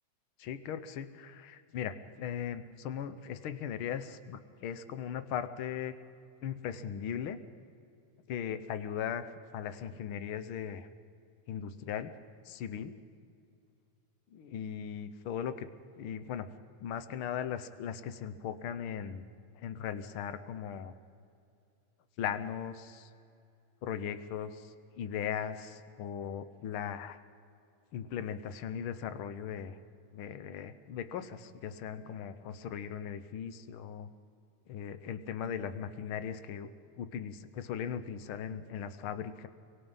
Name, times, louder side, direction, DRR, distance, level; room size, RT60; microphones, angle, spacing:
voice 1, 0.4-6.0 6.4-7.4 8.3-9.2 9.5-10.9 11.5-12.1 12.4-12.9 14.3-15.7 15.9-16.5 16.8-19.3 19.5-20.9 22.2-23.1 23.8-27.2 27.9-29.8 30.1-34.1 34.7-36.7 37.0-39.5, left 8 dB, 65° left, 11 dB, 1.4 m, -38 dB
29.5 x 23.5 x 5.6 m, 2.5 s
omnidirectional pair, 3.5 m